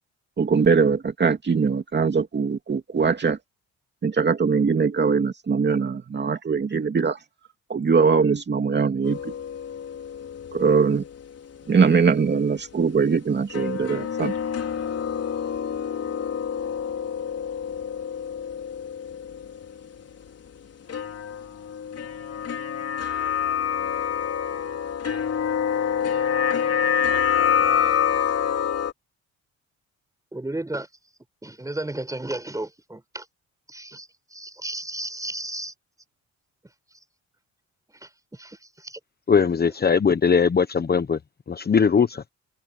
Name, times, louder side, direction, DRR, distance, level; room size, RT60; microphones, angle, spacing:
voice 1, 0.4-3.4 4.0-7.2 7.7-9.3 10.5-11.0 11.7-14.3, right 5 dB, 35° right, 2.5 m, -21 dB
sound 1, 9.0-11.6 11.9-12.0 13.5-20.0 20.9-28.9, left 8 dB, 55° left, 5.0 m, -27 dB
voice 2, 30.3-30.9 31.4-33.2 33.7-35.7 38.0-39.0, right 1 dB, 10° right, 6.0 m, -34 dB
voice 3, 39.3-41.2 41.5-42.2, left 6 dB, 30° left, 1.1 m, -20 dB
cardioid pair, 90°, 30 cm